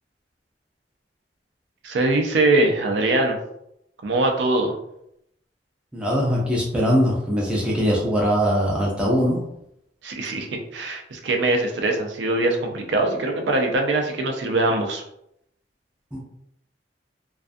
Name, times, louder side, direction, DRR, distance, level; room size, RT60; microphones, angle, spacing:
voice 1, 1.8-3.4 4.0-4.7 10.0-10.5 10.7-15.0, right 2 dB, 80° right, 3 dB, 0.5 m, -22 dB
voice 2, 5.9-9.4 16.1-16.2, equal, 5° right, -4 dB, 0.4 m, -21 dB
2.3 x 2.3 x 2.5 m, 0.77 s
head